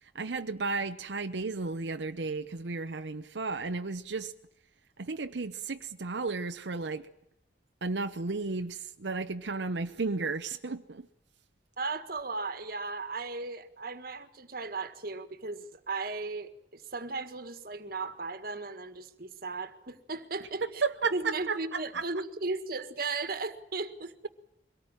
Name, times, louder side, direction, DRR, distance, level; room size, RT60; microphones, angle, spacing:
voice 1, 0.0-4.3 5.0-7.1 7.8-11.1 20.6-22.0, right 4 dB, 90° right, 0.8 m, -33 dB
voice 2, 11.8-20.8 21.1-24.3, right 3 dB, 55° right, 1.8 m, -36 dB
23.5 x 18.0 x 8.9 m
head